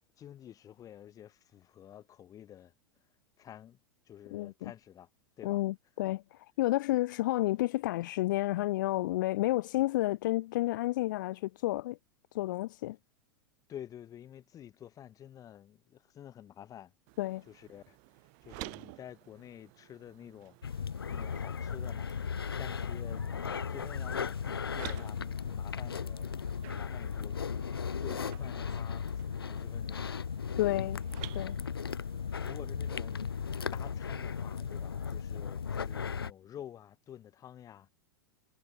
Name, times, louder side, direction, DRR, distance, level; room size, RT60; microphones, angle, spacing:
voice 1, 0.2-2.7 3.4-3.8 4.1-5.1 5.4-5.6 13.7-16.9 17.5-18.0 18.4-20.6 21.1-22.1 22.6-26.3 26.7-27.6 28.0-29.1 29.4-30.1 32.4-33.2 33.7-37.9, left 10 dB, 30° left, 3.3 m, -49 dB
voice 2, 4.3-4.7 5.4-12.0 12.3-13.0 17.2-17.4 30.6-31.0 31.3-31.6, left 17 dB, 55° left, 1.0 m, -31 dB
sound 1, 17.1-35.2, right 40 dB or more, 50° right, 5.9 m, -53 dB
sound 2, 20.6-36.3, left 6 dB, 80° left, 0.5 m, -36 dB
sound 3, 22.3-28.8, right 2 dB, 90° right, 7.2 m, -61 dB
figure-of-eight pair, 90°, 12 cm